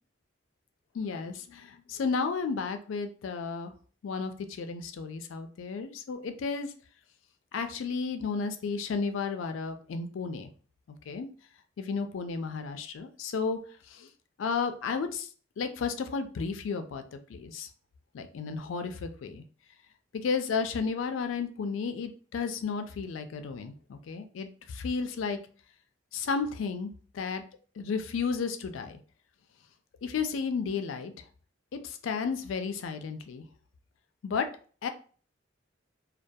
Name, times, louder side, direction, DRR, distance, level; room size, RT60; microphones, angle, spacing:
voice 1, 0.9-3.7 4.0-6.7 7.5-10.5 11.1-11.3 11.8-13.6 13.9-14.1 14.4-15.3 15.6-17.7 18.1-19.4 20.2-25.4 26.1-27.4 27.8-29.0 30.0-31.1 31.7-33.4 34.2-34.5 34.8-34.9, left 5 dB, 80° left, 7 dB, 0.4 m, -33 dB
2.3 x 2.2 x 2.6 m, 0.40 s
head